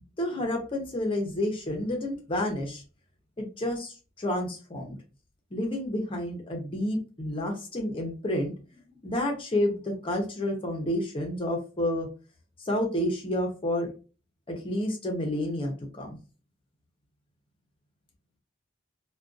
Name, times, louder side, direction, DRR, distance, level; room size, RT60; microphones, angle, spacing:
voice 1, 0.2-2.8 3.4-5.0 5.5-8.5 8.9-12.1 12.6-13.9 14.5-16.2, left 1 dB, 25° left, 1 dB, 0.6 m, -30 dB
2.4 x 2.2 x 2.4 m, 0.34 s
head